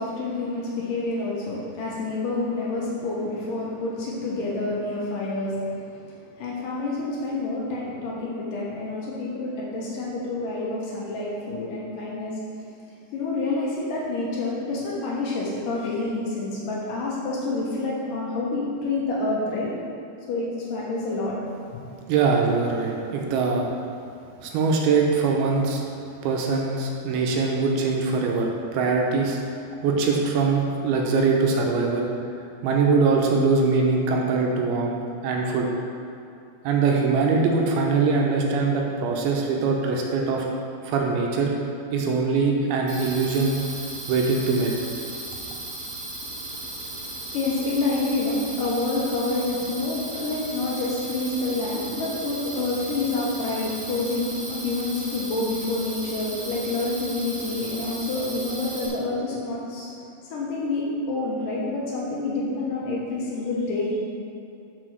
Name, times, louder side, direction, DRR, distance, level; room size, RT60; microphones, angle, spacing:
voice 1, 0.0-12.4 13.1-19.7 20.3-21.4 46.2-60.0 60.2-64.0, left 2 dB, 70° left, -5 dB, 2.3 m, -28 dB
voice 2, 22.1-23.7 24.4-25.8 26.2-29.4 29.8-32.1 32.6-35.7 36.6-40.5 40.8-41.5 41.9-43.6 44.1-44.8, right 4 dB, 80° right, 0 dB, 2.6 m, -22 dB
sound 1, 42.9-58.9, right 2 dB, 60° right, 1.1 m, -36 dB
6.2 x 5.8 x 6.2 m, 2.6 s
omnidirectional pair, 4.5 m